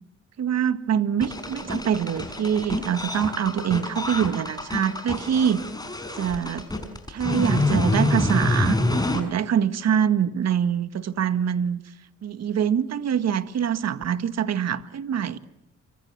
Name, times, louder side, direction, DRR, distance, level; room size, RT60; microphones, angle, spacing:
voice 1, 0.4-5.7 6.2-6.7 7.1-8.8 9.1-11.8 12.2-15.4, right 8 dB, 60° right, 12 dB, 1.8 m, -24 dB
sound 1, 1.2-9.2, left 2 dB, 15° left, 6.3 m, -26 dB
28.5 x 25.5 x 7.3 m, 0.80 s
cardioid pair, 90°, 30 cm